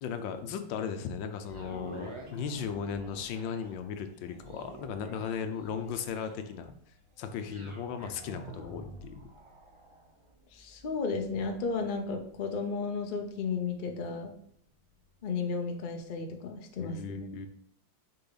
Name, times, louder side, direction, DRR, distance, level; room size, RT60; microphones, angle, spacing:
voice 1, 0.0-6.7 7.2-9.2 16.8-17.5, left 6 dB, 80° left, 8 dB, 1.4 m, -36 dB
sound 1, 1.4-15.6 16.1-16.2, right 2 dB, 30° right, 0.5 m, -50 dB
voice 2, 10.5-14.4 15.2-17.3, left 4 dB, 45° left, 4 dB, 0.6 m, -34 dB
6.8 x 4.5 x 3.9 m, 0.64 s
omnidirectional pair, 2.0 m